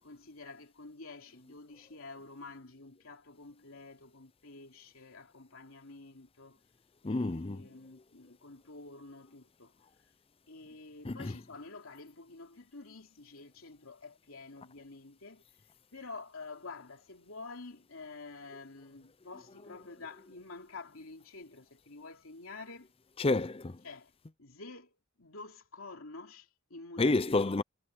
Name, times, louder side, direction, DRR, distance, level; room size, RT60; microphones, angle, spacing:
voice 1, 0.0-6.6 7.0-9.7 10.5-15.4 15.9-22.9 23.8-24.1 24.4-27.2, left 3 dB, 75° left, 3.0 m, -49 dB
voice 2, 7.0-7.7 11.0-11.3 23.2-23.8 27.0-27.6, left 2 dB, 25° left, 0.6 m, -29 dB
head